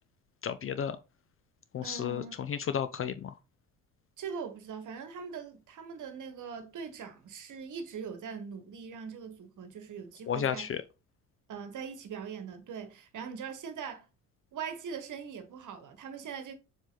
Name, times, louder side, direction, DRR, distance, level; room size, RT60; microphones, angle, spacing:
voice 1, 0.4-1.0 1.7-2.2 2.5-3.3 10.3-10.8, left 8 dB, 30° left, 0.5 m, -32 dB
voice 2, 1.8-2.4 4.2-10.7 11.5-14.1 14.5-16.5, right 6 dB, 45° right, 1.3 m, -41 dB
7.2 x 3.4 x 3.9 m
figure-of-eight pair, 50°, 41 cm